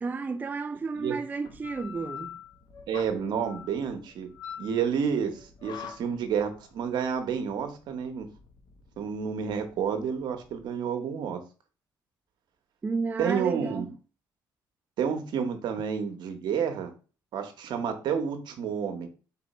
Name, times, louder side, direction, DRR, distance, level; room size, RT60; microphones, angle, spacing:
voice 1, 0.0-2.4 12.8-13.8, right 4 dB, 20° right, 0.3 m, -32 dB
sound 1, 1.5-10.6, left 8 dB, 60° left, 0.8 m, -45 dB
voice 2, 2.9-4.3 4.6-8.3 9.0-11.4 13.2-13.9 15.0-16.9 17.3-19.1, right 7 dB, 70° right, 1.0 m, -30 dB
4.3 x 2.8 x 4.1 m
cardioid pair, 95°, 8 cm